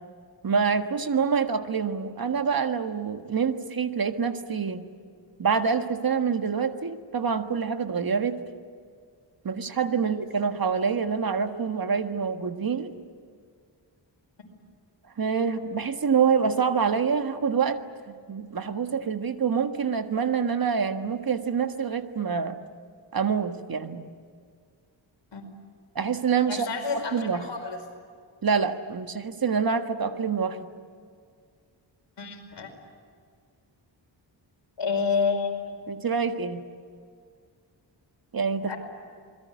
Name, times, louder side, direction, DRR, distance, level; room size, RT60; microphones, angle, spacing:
voice 1, 0.4-4.8 5.4-8.4 9.4-12.9 15.2-17.8 18.1-22.6 23.1-24.1 25.9-26.7 26.9-27.4 28.4-30.6 35.9-36.6 38.3-38.7, right 6 dB, 50° right, 8 dB, 1.7 m, -26 dB
voice 2, 26.5-27.8 32.2-32.7 34.8-35.8 38.7-38.8, left 5 dB, 70° left, 4 dB, 5.1 m, -29 dB
27.5 x 21.5 x 9.5 m, 2.1 s
wide cardioid pair, 110°, 45 cm